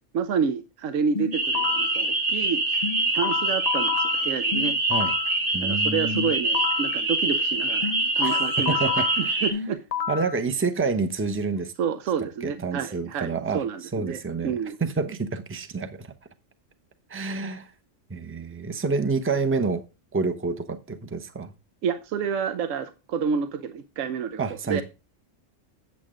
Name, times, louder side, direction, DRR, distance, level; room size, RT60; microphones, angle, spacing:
voice 1, 0.1-2.6 3.1-4.8 5.6-8.8 9.2-9.8 11.8-14.8 21.8-24.4 24.7-24.8, right 6 dB, 80° right, 1.1 m, -29 dB
sound 1, 1.1-2.0 2.8-5.4 6.1-7.0 7.8-10.4, left 7 dB, 65° left, 0.4 m, -30 dB
sound 2, 1.3-9.5, right 2 dB, 45° right, 1.7 m, -25 dB
voice 2, 5.5-6.3 8.2-8.4 8.7-9.4 10.1-11.7 12.4-16.1 17.1-17.7 18.1-19.9 20.1-21.5 24.4-24.8, right 4 dB, 15° right, 0.6 m, -28 dB
8.5 x 7.5 x 3.7 m
omnidirectional pair, 1.3 m